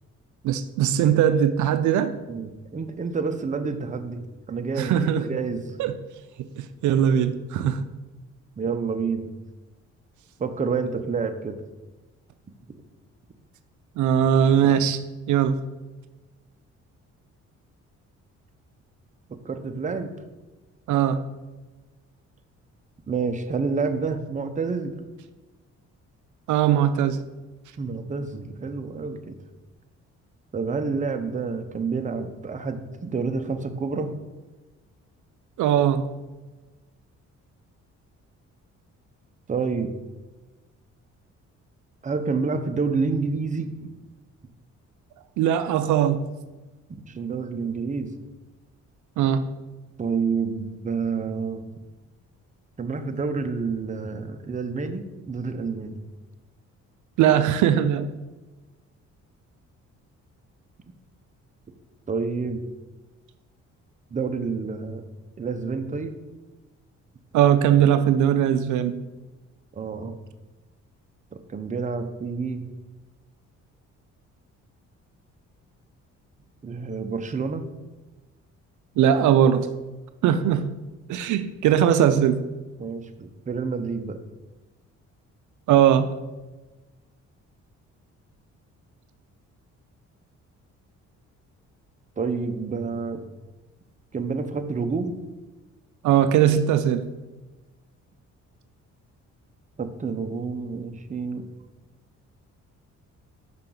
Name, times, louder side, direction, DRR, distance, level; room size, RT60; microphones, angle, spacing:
voice 1, 0.4-2.2 4.8-5.3 5.8-6.0 6.6-7.8 14.0-15.0 15.3-15.6 20.9-21.2 26.5-27.2 35.6-36.0 45.4-46.2 49.2-49.4 57.2-58.1 67.3-69.0 79.0-79.7 80.2-80.8 81.1-82.4 85.7-86.2 96.0-97.1, right 9 dB, 75° right, 11 dB, 0.5 m, -20 dB
voice 2, 2.3-4.2 4.5-5.7 8.6-9.3 10.4-11.6 19.3-20.1 23.1-24.9 27.8-29.3 30.5-34.1 39.5-39.9 42.0-43.7 46.9-48.1 50.0-51.7 52.8-56.0 62.1-62.6 64.1-65.0 65.4-66.1 69.7-70.1 71.3-72.6 76.6-77.6 82.8-84.2 92.2-93.2 94.1-95.1 99.8-101.4, right 4 dB, 25° right, 7 dB, 0.6 m, -28 dB
5.8 x 5.7 x 3.8 m, 1.2 s
cardioid pair, 90°, 30 cm